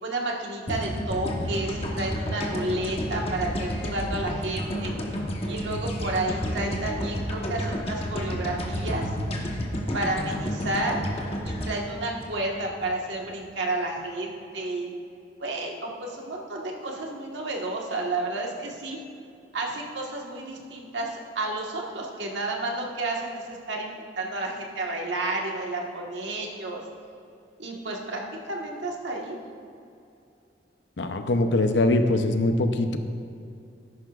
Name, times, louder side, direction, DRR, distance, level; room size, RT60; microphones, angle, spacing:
voice 1, 0.0-4.9 5.4-9.1 9.9-11.0 11.4-14.9 15.4-19.0 19.5-26.8 27.6-28.2 28.5-29.4, right 2 dB, 85° right, -1 dB, 1.5 m, -31 dB
sound 1, 0.7-12.9, equal, 35° left, 1.1 m, -31 dB
voice 2, 31.0-33.0, left 2 dB, 80° left, 7 dB, 0.7 m, -22 dB
13.5 x 11.0 x 2.5 m, 2.5 s
head